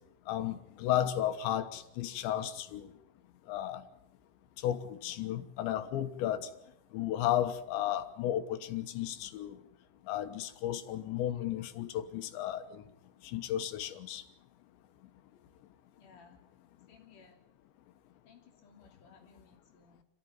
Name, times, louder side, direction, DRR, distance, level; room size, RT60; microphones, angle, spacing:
voice 1, 0.3-2.9 3.5-3.8 4.6-6.5 6.9-9.6 10.1-12.8 13.2-14.2, left 12 dB, 85° left, 9 dB, 3.5 m, -34 dB
voice 2, 16.0-16.4 16.9-17.4 18.2-20.0, left 5 dB, 50° left, 0 dB, 4.3 m, -60 dB
27.0 x 15.0 x 9.3 m, 0.85 s
omnidirectional pair, 5.1 m